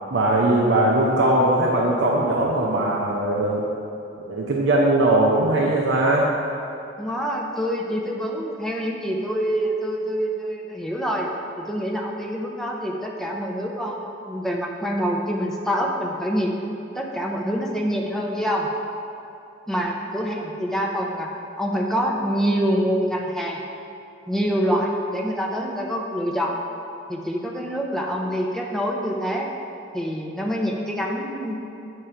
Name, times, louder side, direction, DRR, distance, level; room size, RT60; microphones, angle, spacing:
voice 1, 0.1-3.6 4.3-6.3, right 1 dB, 70° right, -3 dB, 0.6 m, -20 dB
voice 2, 7.0-11.3 11.6-16.5 16.9-18.7 19.7-21.3 21.6-23.6 24.3-26.6 27.1-29.5 29.9-31.6, equal, ahead, -1 dB, 0.6 m, -26 dB
8.4 x 3.7 x 4.4 m, 2.7 s
head